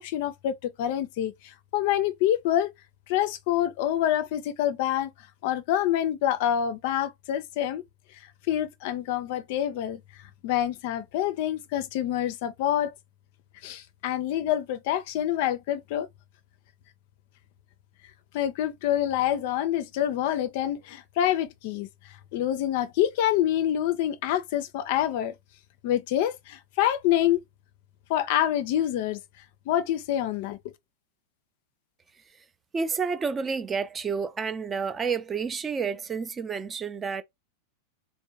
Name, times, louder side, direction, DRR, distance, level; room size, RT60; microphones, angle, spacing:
voice 1, 0.0-2.7 3.1-5.1 5.4-7.8 8.5-10.0 10.4-12.9 13.6-16.1 18.3-21.9 22.3-25.3 25.8-27.4 28.1-29.2 29.7-30.6, left 11 dB, 50° left, 0.4 m, -26 dB
voice 2, 32.7-37.2, right 5 dB, 20° right, 0.4 m, -30 dB
3.5 x 2.1 x 2.7 m
figure-of-eight pair, 90°, 0 cm